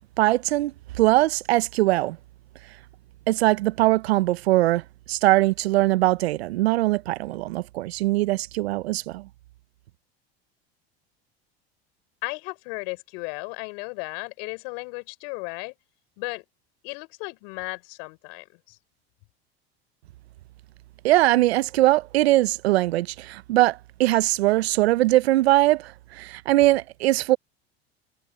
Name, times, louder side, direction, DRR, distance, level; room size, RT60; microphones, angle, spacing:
voice 1, 0.2-2.2 3.3-9.3 21.0-27.4, right 17 dB, 80° right, 0.9 m, -21 dB
voice 2, 12.2-15.7 16.2-16.4 16.8-18.8, left 35 dB, 65° left, 4.0 m, -35 dB
hypercardioid pair, 85°, 31 cm